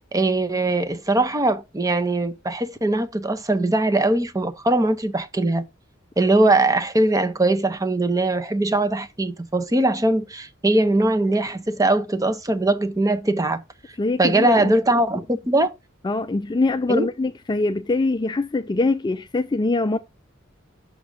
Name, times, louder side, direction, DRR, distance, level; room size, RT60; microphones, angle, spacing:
voice 1, 0.1-5.6 6.2-13.6 14.2-15.7 16.9-17.1, right 2 dB, 15° right, 0.7 m, -21 dB
voice 2, 14.0-15.0 16.0-20.0, left 2 dB, 20° left, 0.3 m, -23 dB
6.3 x 5.1 x 3.5 m
head